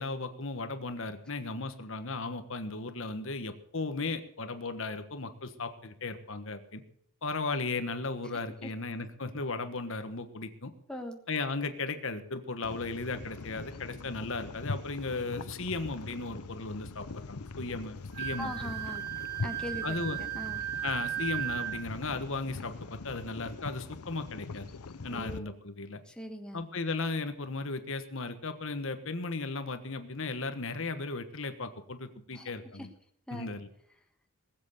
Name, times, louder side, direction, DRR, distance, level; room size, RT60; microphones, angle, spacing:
voice 1, 0.0-6.8 7.2-10.7 11.3-18.7 19.8-20.2 20.8-24.7 25.0-26.0 26.5-32.9 33.3-33.7, left 3 dB, 60° left, 9 dB, 1.3 m, -36 dB
sound 1, 12.6-25.4, left 3 dB, 85° left, 0.7 m, -42 dB
Wind instrument woodwind instrument, 18.1-21.9, right 12 dB, 45° right, 1.6 m, -35 dB
voice 2, 18.4-19.1 19.4-20.0 20.4-20.6 25.1-25.4 26.0-26.6 32.3-32.5 32.8-32.9 33.3-33.5, equal, 5° left, 3 dB, 1.4 m, -40 dB
20.0 x 7.9 x 6.8 m, 0.68 s
head